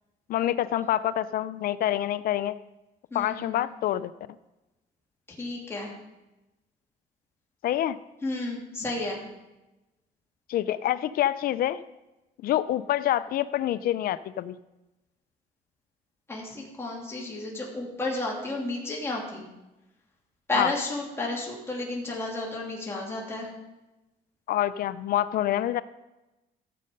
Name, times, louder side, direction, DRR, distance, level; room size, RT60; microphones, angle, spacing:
voice 1, 0.3-2.6 3.1-4.1 7.6-8.0 10.5-11.8 12.4-14.6 20.6-20.7 24.5-25.8, left 12 dB, 60° left, 15 dB, 0.5 m, -26 dB
voice 2, 3.1-3.6 5.4-5.9 8.2-9.2 16.3-19.4 20.5-23.5, left 2 dB, 15° left, -3 dB, 3.1 m, -32 dB
15.0 x 7.5 x 5.3 m, 1.0 s
cardioid pair, 110°, 17 cm